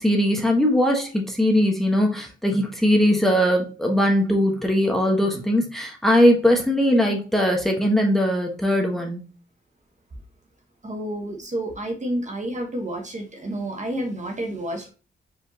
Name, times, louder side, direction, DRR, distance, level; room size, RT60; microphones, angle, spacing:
voice 1, 0.0-9.2, equal, ahead, 1 dB, 1.2 m, -20 dB
voice 2, 10.8-14.9, right 1 dB, 35° right, 3 dB, 1.2 m, -30 dB
4.8 x 3.5 x 2.8 m, 0.34 s
cardioid pair, 85°, 21 cm